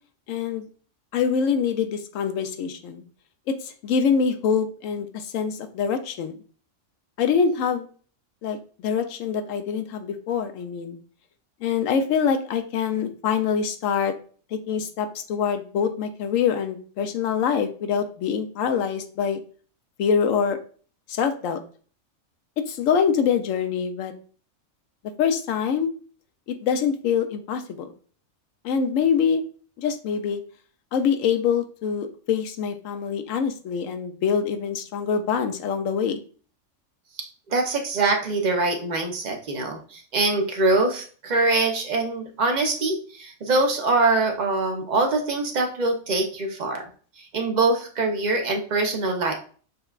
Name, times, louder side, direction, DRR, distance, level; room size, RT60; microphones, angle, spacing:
voice 1, 0.3-0.7 1.1-3.0 3.5-6.3 7.2-7.9 8.4-11.0 11.6-14.1 14.5-19.4 20.0-20.6 21.1-21.6 22.7-24.1 25.2-25.9 26.5-27.9 28.6-29.4 29.8-30.4 30.9-36.2, left 6 dB, 75° left, 8 dB, 0.9 m, -25 dB
voice 2, 37.5-46.9 47.2-49.3, right 3 dB, 45° right, 3 dB, 0.6 m, -23 dB
6.5 x 2.2 x 2.3 m, 0.42 s
omnidirectional pair, 1.4 m